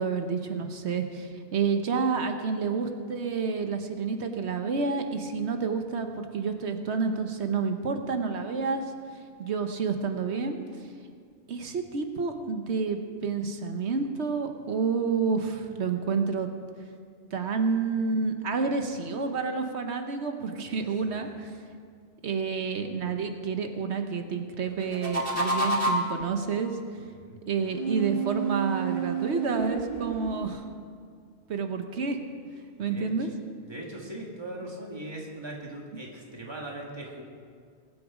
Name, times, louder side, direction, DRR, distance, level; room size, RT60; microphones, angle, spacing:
voice 1, 0.0-8.8 9.4-10.6 11.5-16.5 17.3-21.5 22.2-26.8 27.5-30.6 31.5-32.2 32.8-33.3, right 5 dB, 70° right, 6 dB, 1.2 m, -29 dB
voice 2, 21.0-21.4 27.2-27.4 32.8-33.3 33.6-37.2, right 1 dB, 20° right, -2 dB, 2.0 m, -40 dB
sound 1, 24.8-26.2 27.7-30.5, right 3 dB, 50° right, 1.7 m, -29 dB
21.5 x 7.8 x 4.9 m, 2.1 s
omnidirectional pair, 1.2 m